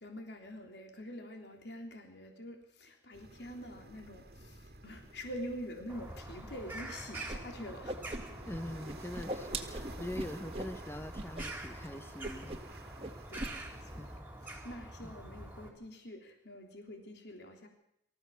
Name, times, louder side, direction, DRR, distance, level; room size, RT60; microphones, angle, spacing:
voice 1, 0.0-8.0 13.3-14.1 14.4-17.7, equal, 70° left, 3 dB, 3.6 m, -46 dB
sound 1, 3.1-14.2, right 1 dB, 55° right, 2.0 m, -53 dB
Bird vocalization bird call bird song, 5.9-15.7, right 1 dB, 10° right, 4.2 m, -46 dB
Whoosh swoosh swish, 7.3-7.4 7.7-8.6 8.8-10.7 11.1-11.5 11.7-11.9 12.2-12.7 13.0-13.5, right 1 dB, 30° right, 1.8 m, -40 dB
voice 2, 8.5-12.6 14.0-14.3 15.0-15.1, left 1 dB, 10° left, 9 dB, 0.9 m, -43 dB
24.5 x 15.0 x 7.2 m, 0.78 s
head